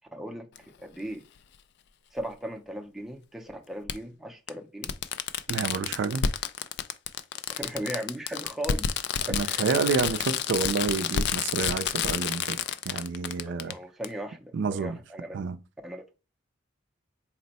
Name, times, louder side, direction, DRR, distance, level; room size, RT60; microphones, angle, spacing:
voice 1, 0.1-1.2 2.1-4.9 7.5-8.9 9.3-9.7 13.4-15.4 15.8-16.1, equal, ahead, 0.5 m, -37 dB
Fireworks, 0.6-0.7 2.2-2.3 3.9-4.0 4.5-4.6 4.8-13.7 14.0-14.1, left 8 dB, 60° left, 0.3 m, -29 dB
voice 2, 5.5-6.2 9.2-12.6 12.9-13.8 14.5-15.0 15.3-15.6, right 5 dB, 65° right, 0.4 m, -29 dB
4.2 x 2.1 x 4.0 m
head